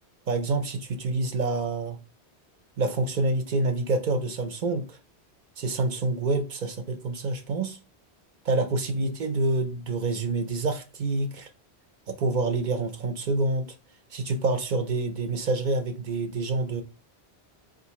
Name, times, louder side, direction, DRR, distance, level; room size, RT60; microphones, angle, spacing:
voice 1, 0.3-2.0 2.8-5.0 5.6-7.8 8.5-11.5 12.1-13.7 14.1-16.8, right 2 dB, 55° right, 0.6 m, -27 dB
3.8 x 2.5 x 2.8 m
omnidirectional pair, 1.1 m